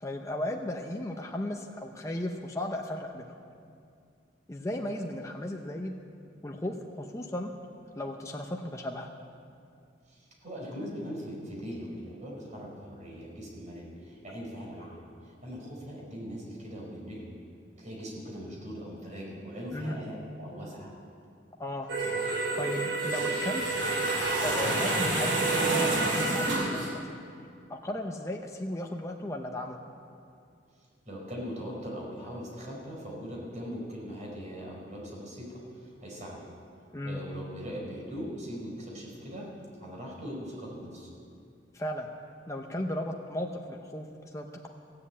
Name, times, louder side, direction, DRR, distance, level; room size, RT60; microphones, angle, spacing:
voice 1, 0.0-3.3 4.5-5.9 6.4-7.5 7.9-9.1 19.7-20.0 21.6-21.9 22.5-23.7 24.4-27.2 27.7-29.8 36.9-37.2 41.7-42.1 42.5-44.1 44.3-44.7, left 1 dB, 15° left, 1 dB, 0.7 m, -35 dB
voice 2, 10.1-17.3 17.8-20.9 31.0-36.4 37.0-39.5 39.8-41.1, equal, 45° right, -3 dB, 4.5 m, -40 dB
sound 1, 21.9-26.9, right 2 dB, 80° right, 2.8 m, -28 dB
16.0 x 7.8 x 8.5 m, 2.4 s
head